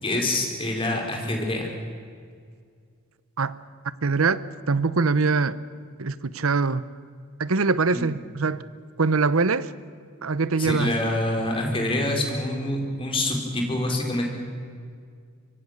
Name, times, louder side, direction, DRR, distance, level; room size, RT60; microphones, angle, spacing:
voice 1, 0.0-1.7 7.9-8.1 10.6-14.3, left 1 dB, 25° left, 1 dB, 4.3 m, -26 dB
voice 2, 4.0-5.6 6.0-6.8 7.4-8.6 9.0-9.7 10.2-11.0, right 4 dB, 80° right, 16 dB, 0.8 m, -23 dB
25.0 x 23.0 x 6.6 m, 2.1 s
head